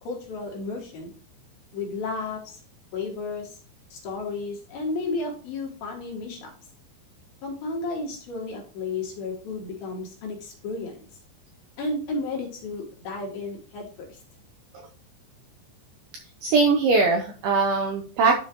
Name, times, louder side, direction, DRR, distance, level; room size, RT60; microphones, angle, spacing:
voice 1, 0.0-1.2 1.7-2.6 2.9-3.6 3.9-6.5 7.4-11.1 11.8-14.2, left 3 dB, 60° left, -1 dB, 3.1 m, -33 dB
voice 2, 16.4-18.4, right 4 dB, 80° right, 2 dB, 2.2 m, -21 dB
11.5 x 4.8 x 3.0 m, 0.40 s
omnidirectional pair, 5.3 m